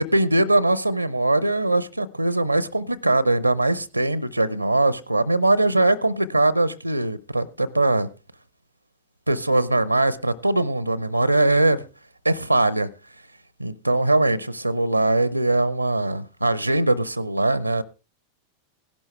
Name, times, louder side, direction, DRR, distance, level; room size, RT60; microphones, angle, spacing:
voice 1, 0.0-8.1 9.3-11.8 12.2-12.9 13.6-17.8, right 2 dB, 85° right, 0.6 m, -21 dB
17.0 x 11.5 x 3.2 m
figure-of-eight pair, 90°, 0 cm